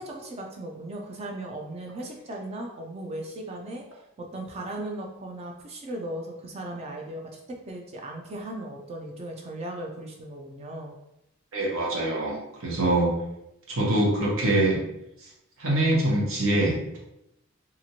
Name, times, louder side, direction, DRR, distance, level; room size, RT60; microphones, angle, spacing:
voice 1, 0.0-3.8 4.2-10.9, right 1 dB, 30° right, 1 dB, 0.4 m, -37 dB
voice 2, 11.5-13.1 13.7-14.8 15.6-17.0, right 1 dB, 75° right, -3 dB, 0.9 m, -24 dB
2.9 x 2.4 x 2.7 m, 0.84 s
head